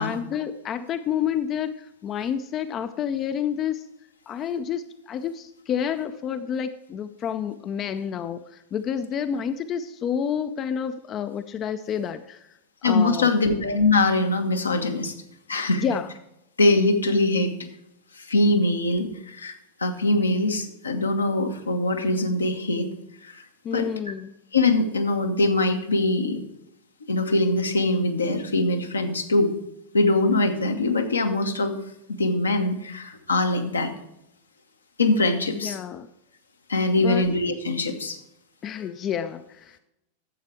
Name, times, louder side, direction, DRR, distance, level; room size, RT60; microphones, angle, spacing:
voice 1, 0.0-3.8 4.3-12.5 12.8-13.3 15.8-16.1 23.6-24.3 35.5-36.1 37.0-37.2 38.6-39.8, left 8 dB, 30° left, 11 dB, 0.5 m, -29 dB
voice 2, 12.8-15.1 15.5-15.8 16.6-17.5 18.2-22.9 23.2-23.4 23.7-23.9 24.5-26.4 27.1-29.5 29.9-31.7 32.1-33.9 35.0-35.8 36.7-38.2, left 2 dB, 75° left, 5 dB, 1.1 m, -22 dB
11.5 x 7.5 x 4.5 m, 0.84 s
figure-of-eight pair, 90°, 0 cm